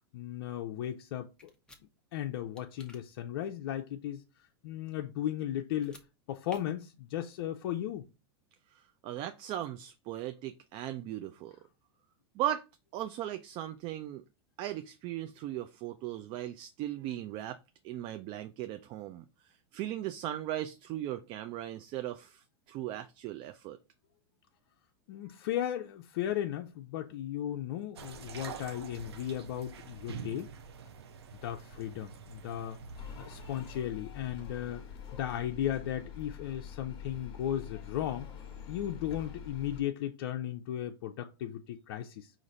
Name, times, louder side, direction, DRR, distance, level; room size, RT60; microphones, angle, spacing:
voice 1, 0.1-1.5 2.1-4.2 4.6-6.0 6.3-8.0 25.1-30.5 31.4-32.8 33.2-34.8 35.1-38.3 38.7-42.3, left 11 dB, 65° left, 0.5 m, -36 dB
sound 1, 1.4-1.8 2.6-3.0 5.7-6.1 6.5-6.6, left 2 dB, 5° left, 0.8 m, -54 dB
voice 2, 8.7-11.6 12.4-12.6 12.9-14.2 14.6-17.6 17.8-19.3 19.7-23.8, right 12 dB, 40° right, 0.4 m, -38 dB
sound 2, 28.0-33.8, right 6 dB, 90° right, 0.7 m, -46 dB
sound 3, 32.9-39.8, left 7 dB, 40° left, 1.0 m, -46 dB
4.9 x 2.5 x 4.0 m
hypercardioid pair, 120°, 13 cm